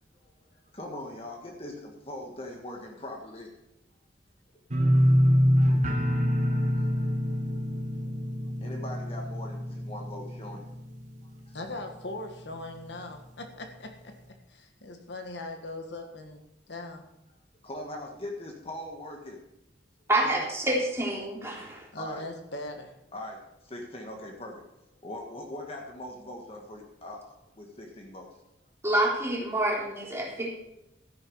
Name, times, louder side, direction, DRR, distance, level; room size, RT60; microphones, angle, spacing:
voice 1, 0.5-3.5 4.8-4.9 8.6-10.7 11.5-11.6 17.3-17.4 17.6-19.4 22.0-22.3 23.1-24.6 24.9-28.3, left 1 dB, 35° left, 1 dB, 1.5 m, -41 dB
sound 1, 4.7-11.6 11.9-12.4 12.8-12.9, equal, 45° right, 1.6 m, -26 dB
voice 2, 11.5-14.2 14.5-16.4 16.7-17.0 20.2-20.5 21.9-22.9, left 2 dB, 75° left, 5 dB, 1.6 m, -40 dB
voice 3, 20.1-21.9 28.8-30.6, right 1 dB, 15° right, -3 dB, 3.6 m, -27 dB
13.5 x 10.5 x 4.7 m, 0.88 s
head